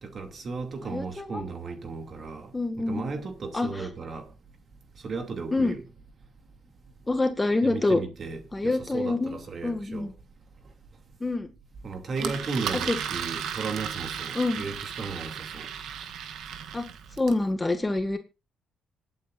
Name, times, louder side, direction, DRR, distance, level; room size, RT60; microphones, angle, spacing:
voice 1, 0.0-2.5 2.9-4.3 5.0-5.8 7.6-10.1 11.8-15.7, right 4 dB, 45° right, 2.6 m, -35 dB
voice 2, 0.8-1.4 2.5-3.1 3.5-3.8 5.5-5.7 7.1-8.0 8.5-10.1 11.2-11.5 12.2-12.3 12.7-13.0 14.3-14.6 16.7-16.8 17.2-18.2, left 2 dB, 20° left, 1.7 m, -26 dB
Engine, 12.2-17.4, right 8 dB, 80° right, 1.4 m, -35 dB
26.0 x 8.8 x 2.5 m
cardioid pair, 90°, 0 cm